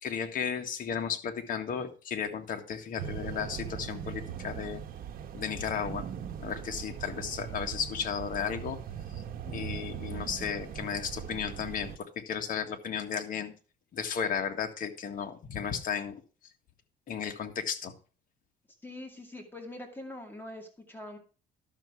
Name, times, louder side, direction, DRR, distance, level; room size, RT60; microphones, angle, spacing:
voice 1, 0.0-4.8 5.3-6.1 6.4-8.8 9.1-13.5 13.9-16.2 17.1-17.9, left 7 dB, 55° left, 5 dB, 1.8 m, -34 dB
sound 1, 3.0-12.0, right 9 dB, 60° right, 1.3 m, -40 dB
voice 2, 18.8-21.2, left 1 dB, 10° left, 3 dB, 2.3 m, -43 dB
12.0 x 6.9 x 4.8 m, 0.36 s
cardioid pair, 110°, 17 cm